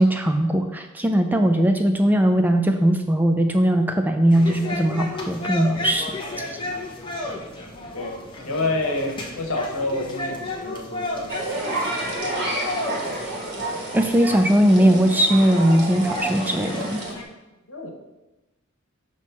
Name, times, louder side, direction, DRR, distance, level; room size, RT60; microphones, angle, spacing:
voice 1, 0.0-6.1 13.9-17.0, right 1 dB, 10° right, 5 dB, 0.3 m, -19 dB
sound 1, 4.3-17.2, left 2 dB, 25° left, 0.8 m, -33 dB
voice 2, 8.4-12.6 13.8-14.0 17.7-17.9, left 2 dB, 85° left, 2 dB, 1.1 m, -29 dB
sound 2, 11.3-17.1, right 2 dB, 50° right, 1.4 m, -30 dB
6.1 x 3.0 x 5.7 m, 1.0 s
head